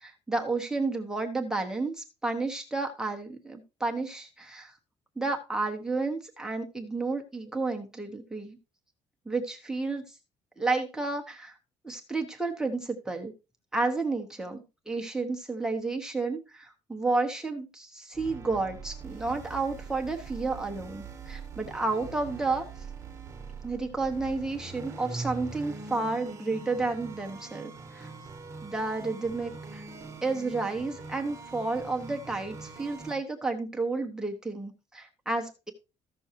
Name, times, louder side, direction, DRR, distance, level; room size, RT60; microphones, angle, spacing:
voice 1, 0.0-4.7 5.2-8.6 9.3-10.1 10.6-11.6 11.8-13.3 13.7-22.7 23.6-28.1 28.6-29.8 30.2-35.7, right 3 dB, 5° right, 1 dB, 1.0 m, -31 dB
sound 1, 18.1-33.1, right 4 dB, 20° right, 1.3 m, -43 dB
14.5 x 6.2 x 2.9 m, 0.28 s
cardioid pair, 170°, 13 cm